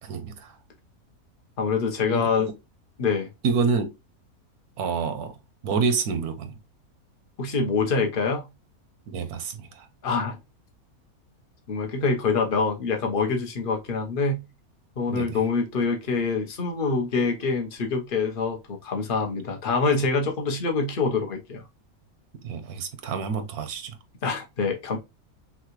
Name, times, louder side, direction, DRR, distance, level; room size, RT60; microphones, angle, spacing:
voice 1, 0.0-0.6 2.1-2.5 3.4-3.9 4.8-5.3 5.6-6.6 9.1-9.9 15.1-15.4 22.4-24.0, right 5 dB, 85° right, 1.3 m, -28 dB
voice 2, 1.6-2.5 3.0-3.3 7.4-8.5 10.0-10.4 11.7-14.4 15.0-21.6 24.2-25.0, left 4 dB, 40° left, 1.1 m, -25 dB
5.8 x 2.5 x 3.1 m
omnidirectional pair, 1.5 m